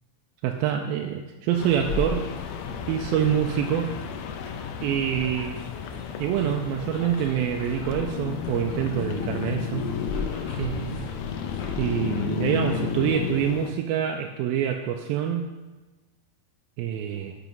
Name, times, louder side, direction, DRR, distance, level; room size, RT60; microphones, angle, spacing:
voice 1, 0.4-2.3 2.9-3.9 4.8-5.6 6.2-9.9 10.6-11.1 11.8-15.5 16.8-17.4, right 9 dB, 80° right, 3 dB, 2.3 m, -26 dB
sound 1, 1.5-13.1, left 3 dB, 45° left, 3.4 m, -39 dB
sound 2, 1.6-13.7, left 8 dB, 80° left, 2.5 m, -33 dB
12.0 x 6.0 x 5.4 m, 1.2 s
omnidirectional pair, 4.5 m